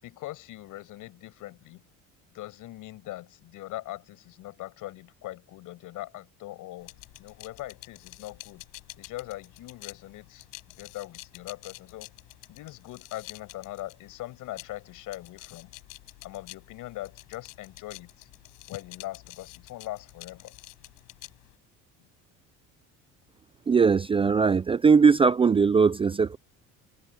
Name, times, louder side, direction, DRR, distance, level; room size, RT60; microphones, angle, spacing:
voice 1, 0.0-1.8 2.3-8.7 9.0-10.5 10.8-12.1 12.5-15.7 16.2-18.3 18.7-20.6 22.0-22.1, left 16 dB, 70° left, 7.2 m, -41 dB
sound 1, 6.8-21.6, left 25 dB, 90° left, 7.4 m, -49 dB
voice 2, 23.7-26.4, right 5 dB, 15° right, 0.4 m, -20 dB
cardioid pair, 130°, 33 cm